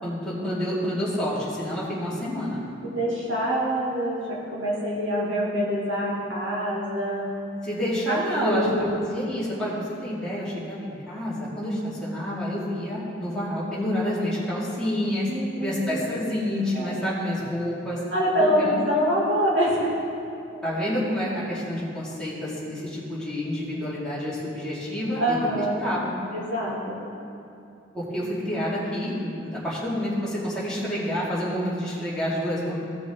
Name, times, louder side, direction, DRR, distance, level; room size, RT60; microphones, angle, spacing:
voice 1, 0.0-2.6 7.6-15.3 15.6-18.0 18.6-18.9 20.6-25.4 25.8-26.1 27.9-32.7, equal, 5° left, -9 dB, 2.3 m, -28 dB
voice 2, 2.8-7.3 8.1-9.0 15.3-16.2 16.7-17.1 18.1-19.9 25.2-25.8 26.3-27.0, equal, 65° right, -6 dB, 2.4 m, -25 dB
16.0 x 6.0 x 3.7 m, 2.6 s
head